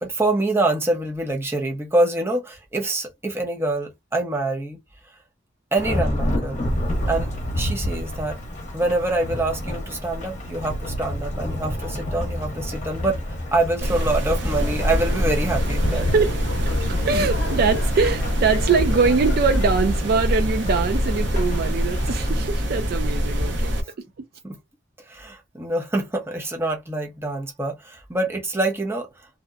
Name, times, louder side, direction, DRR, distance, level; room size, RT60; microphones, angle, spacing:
voice 1, 0.0-4.8 5.7-6.7 7.1-8.4 8.7-16.1 24.4-24.6 25.1-29.3, right 2 dB, 15° right, 0.7 m, -25 dB
Thunderstorm / Rain, 5.8-22.3, equal, 40° left, 0.9 m, -30 dB
sound 1, 13.8-23.8, equal, 70° right, 0.8 m, -24 dB
sound 2, 14.5-19.7, left 2 dB, 80° left, 0.6 m, -30 dB
voice 2, 16.8-23.7 24.0-24.1, right 5 dB, 50° right, 0.4 m, -22 dB
2.7 x 2.1 x 2.3 m
head